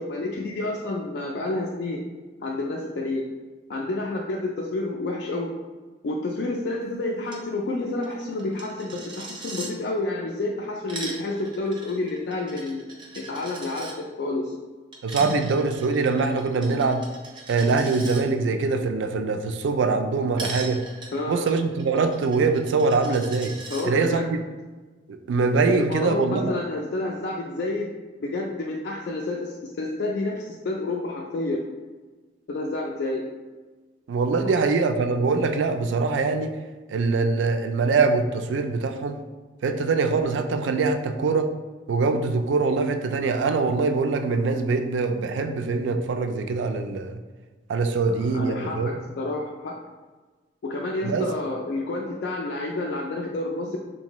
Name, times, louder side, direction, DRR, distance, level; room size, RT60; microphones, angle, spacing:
voice 1, 0.0-2.0 2.4-3.2 3.7-5.5 6.0-12.8 13.1-14.5 15.2-15.3 21.1-21.4 23.7-24.3 25.7-27.9 28.2-31.6 32.5-33.2 48.1-49.7 50.6-53.8, left 2 dB, 65° left, -1 dB, 0.3 m, -29 dB
Coin (dropping), 7.2-7.4 7.7-7.8 8.0-9.7 10.6-13.9 14.9-18.2 20.4-23.8, right 3 dB, 25° right, 0.5 m, -39 dB
voice 2, 15.0-17.0 17.5-20.8 21.3-23.5 23.8-24.4 25.1-26.5 34.1-36.5 36.9-39.2 39.6-41.5 41.9-47.2 47.7-49.0 51.0-51.3, right 4 dB, 90° right, 7 dB, 0.3 m, -23 dB
3.9 x 2.6 x 2.9 m, 1.3 s
head